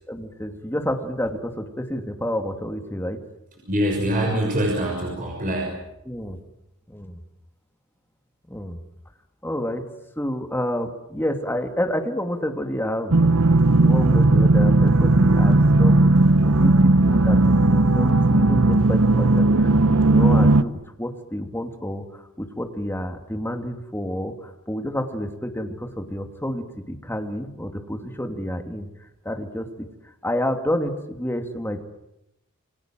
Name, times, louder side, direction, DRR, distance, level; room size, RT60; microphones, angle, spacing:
voice 1, 0.1-3.2 6.1-6.4 6.9-7.2 8.5-8.8 9.4-9.8 10.2-13.2 13.8-16.2 16.4-28.9 29.2-29.9 30.2-31.8, equal, 10° left, 5 dB, 2.8 m, -29 dB
voice 2, 3.7-5.8, right 1 dB, 40° right, 0 dB, 6.5 m, -24 dB
sound 1, 13.1-20.6, right 2 dB, 75° right, 1.1 m, -16 dB
28.5 x 25.0 x 7.7 m, 0.87 s
head